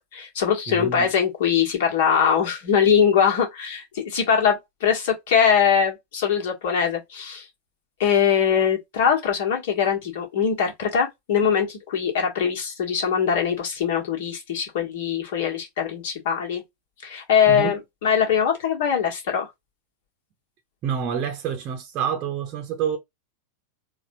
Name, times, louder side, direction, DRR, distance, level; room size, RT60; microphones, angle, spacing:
voice 1, 0.0-7.5 8.0-16.6 17.0-19.5, left 7 dB, 55° left, 1.5 m, -22 dB
voice 2, 0.7-1.1 17.5-17.7 20.8-23.0, right 8 dB, 35° right, 0.8 m, -27 dB
4.1 x 2.4 x 2.6 m
figure-of-eight pair, 90°, 0 cm